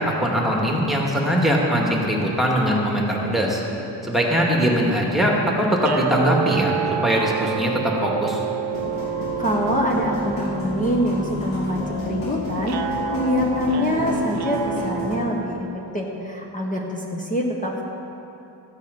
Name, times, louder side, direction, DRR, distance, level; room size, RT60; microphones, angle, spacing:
voice 1, 0.0-3.6 4.0-6.7 7.0-8.4, equal, ahead, -2 dB, 2.2 m, -21 dB
sound 1, 5.8-16.0, right 8 dB, 55° right, 0.6 m, -30 dB
sound 2, 8.7-15.2, equal, 75° left, 2.6 m, -30 dB
voice 2, 9.4-15.7 15.9-17.8, left 1 dB, 15° left, -1 dB, 1.4 m, -25 dB
14.5 x 9.1 x 5.4 m, 2.9 s
cardioid pair, 85°, 45 cm